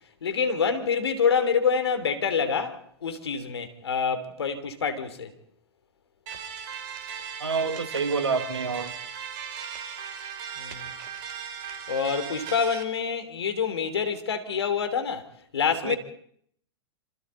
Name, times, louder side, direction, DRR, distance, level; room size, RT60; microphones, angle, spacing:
voice 1, 0.2-5.3 10.6-10.9 11.9-15.3 15.5-16.0, left 6 dB, 70° left, 3.2 m, -26 dB
sound 1, 6.3-12.8, right 7 dB, 45° right, 3.8 m, -37 dB
voice 2, 7.4-8.9 15.8-16.0, right 4 dB, 75° right, 2.2 m, -27 dB
27.5 x 27.0 x 4.1 m
figure-of-eight pair, 95°, 14 cm